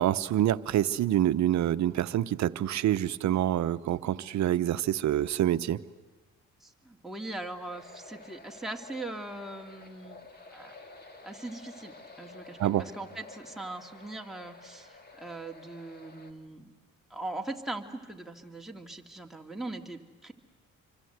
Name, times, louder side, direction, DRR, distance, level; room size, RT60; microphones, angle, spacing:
voice 1, 0.0-5.8 12.6-12.8, right 12 dB, 70° right, 14 dB, 0.9 m, -26 dB
voice 2, 6.6-10.2 10.5-10.7 11.2-16.7 17.1-20.3, right 2 dB, ahead, 1 dB, 2.3 m, -40 dB
sound 1, 7.7-16.3, left 3 dB, 30° left, 2.5 m, -51 dB
26.5 x 24.5 x 8.1 m, 1.3 s
cardioid pair, 90°, 30 cm